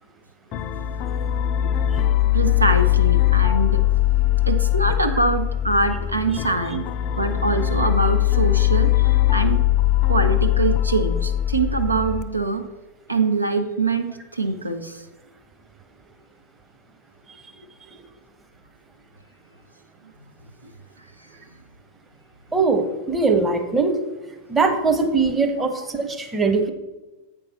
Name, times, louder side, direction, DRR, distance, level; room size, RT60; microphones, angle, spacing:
sound 1, 0.5-12.2, left 14 dB, 40° left, 0.4 m, -20 dB
voice 1, 2.3-3.8 4.4-6.8 7.2-9.6 10.1-12.6 13.1-15.1 20.6-20.7 25.6-25.7, right 3 dB, 85° right, 7 dB, 0.5 m, -24 dB
voice 2, 22.5-24.0 24.5-26.7, right 4 dB, 15° right, 4 dB, 0.9 m, -21 dB
8.2 x 5.4 x 4.1 m, 1.1 s
figure-of-eight pair, 90°, 0 cm